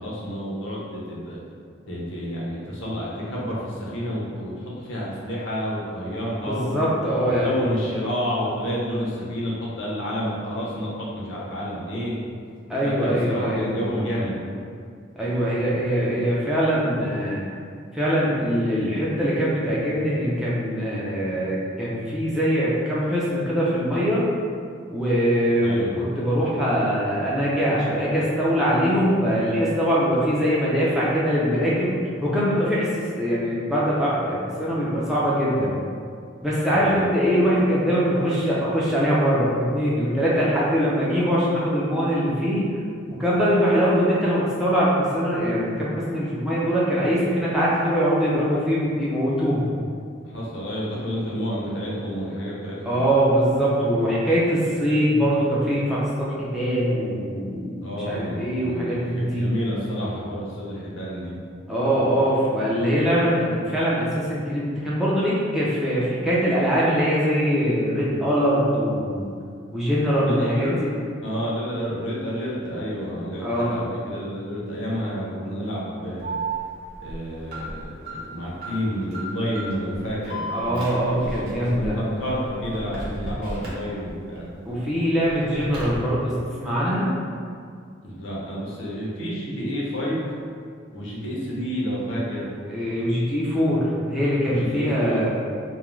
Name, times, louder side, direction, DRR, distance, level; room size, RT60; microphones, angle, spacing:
voice 1, 0.0-1.4 1.9-6.7 7.2-12.1 12.8-14.4 25.6-26.0 36.7-37.0 50.3-53.0 57.8-61.4 70.2-70.8 71.2-76.4 77.0-84.5 88.0-90.3 90.9-92.5 94.6-95.3, equal, 70° left, -6 dB, 0.6 m, -30 dB
voice 2, 6.5-7.6 12.7-13.7 15.2-17.5 17.9-24.2 24.9-31.9 32.2-35.8 36.4-42.7 43.1-49.7 52.8-59.5 61.7-69.3 69.7-70.9 73.4-73.7 80.5-82.0 84.7-87.1 92.7-95.3, equal, 5° right, -8 dB, 0.4 m, -22 dB
Alarm, 76.2-84.4 84.7-86.0, right 2 dB, 50° right, 0.7 m, -34 dB
2.3 x 2.1 x 3.0 m, 2.2 s
head